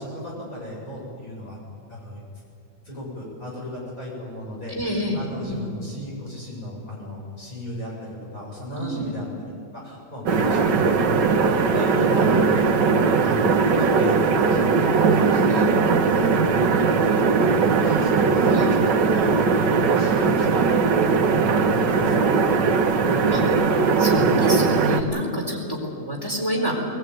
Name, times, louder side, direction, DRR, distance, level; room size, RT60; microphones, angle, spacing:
voice 1, 0.0-1.6 1.9-2.2 2.8-9.3 9.7-16.4 17.7-22.4, left 1 dB, 50° left, -5 dB, 7.4 m, -34 dB
voice 2, 4.7-5.6 8.8-9.1 15.5-15.7 18.5-18.7 23.3-23.4 24.0-26.8, equal, 10° left, -1 dB, 4.0 m, -28 dB
sound 1, 10.3-25.0, right 4 dB, 85° right, 1.9 m, -19 dB
21.0 x 18.0 x 9.4 m, 2.5 s
omnidirectional pair, 1.9 m